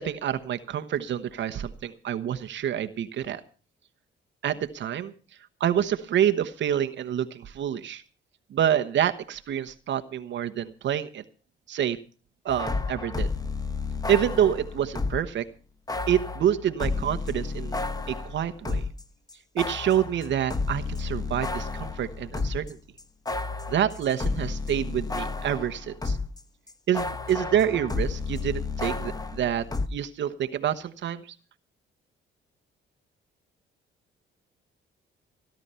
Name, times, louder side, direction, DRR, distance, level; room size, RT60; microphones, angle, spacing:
voice 1, 0.0-3.4 4.4-5.1 5.6-8.0 8.5-11.2 11.7-12.0 12.4-13.3 14.1-15.4 16.1-18.8 19.5-22.8 23.7-26.2 26.9-29.6 29.9-31.4, right 10 dB, 65° right, 8 dB, 1.1 m, -27 dB
sound 1, 12.5-15.3 15.9-19.0 19.3-26.4 26.7-29.9, left 3 dB, 20° left, 1.2 m, -32 dB
17.0 x 12.0 x 5.6 m, 0.38 s
cardioid pair, 90°, 20 cm